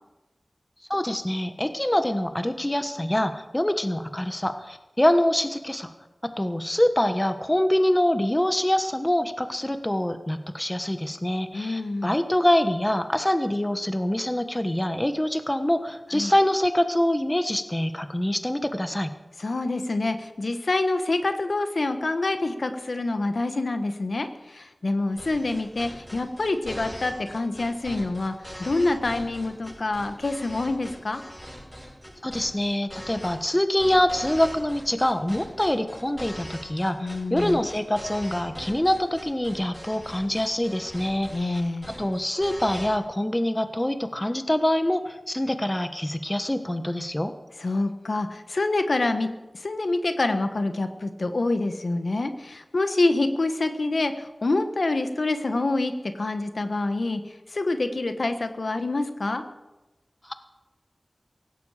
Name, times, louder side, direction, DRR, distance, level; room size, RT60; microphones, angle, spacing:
voice 1, 0.9-5.9 6.2-19.1 32.2-41.6 42.0-47.3 60.2-60.3, left 1 dB, 20° left, 9 dB, 1.2 m, -25 dB
voice 2, 11.5-12.1 16.1-16.3 19.4-31.2 37.0-37.6 41.3-41.9 47.6-49.3 49.5-57.2 57.5-59.4, left 2 dB, 75° left, 8 dB, 1.3 m, -26 dB
sound 1, 25.1-42.9, equal, ahead, 7.0 m, -41 dB
17.0 x 16.0 x 5.0 m, 1.1 s
wide cardioid pair, 60°, 0 cm